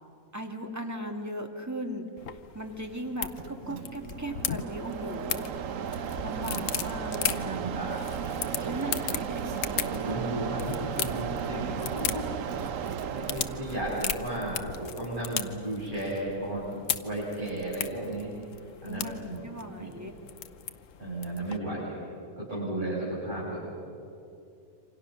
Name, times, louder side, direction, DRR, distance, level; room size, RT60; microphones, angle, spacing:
voice 1, 0.3-2.1 2.5-5.5 5.9-7.6 8.6-9.5 18.9-20.1, right 1 dB, 10° right, 3 dB, 2.2 m, -38 dB
sound 1, 2.2-21.6, left 8 dB, 70° left, 1.2 m, -37 dB
Mechanisms, 3.3-15.7, right 8 dB, 70° right, 1.2 m, -35 dB
voice 2, 6.3-6.7 7.3-8.0 8.4-8.8 9.5-18.3 18.8-19.5 19.7-19.9 21.0-22.0 22.4-23.6, right 1 dB, 35° right, -9 dB, 7.8 m, -35 dB
28.0 x 26.0 x 6.6 m, 2.6 s
omnidirectional pair, 1.4 m